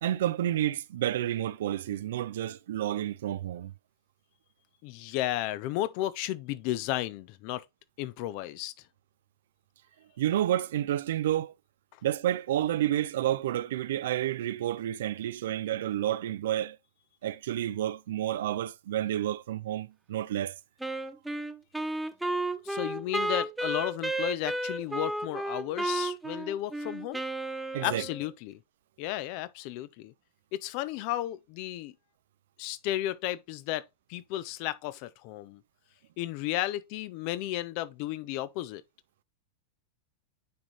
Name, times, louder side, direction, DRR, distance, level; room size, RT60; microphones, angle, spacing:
voice 1, 0.0-3.7 10.2-11.5 12.0-16.8 17.2-20.6 27.7-28.0, right 12 dB, 60° right, 0.4 m, -30 dB
voice 2, 4.8-7.6 8.0-8.7 22.6-27.2 27.8-28.6 29.0-30.1 30.5-31.9 32.6-35.6 36.2-38.8, left 14 dB, 45° left, 0.5 m, -33 dB
Wind instrument woodwind instrument, 20.8-28.3, right 1 dB, 5° right, 0.6 m, -33 dB
9.5 x 3.7 x 3.0 m
figure-of-eight pair, 90°, 0 cm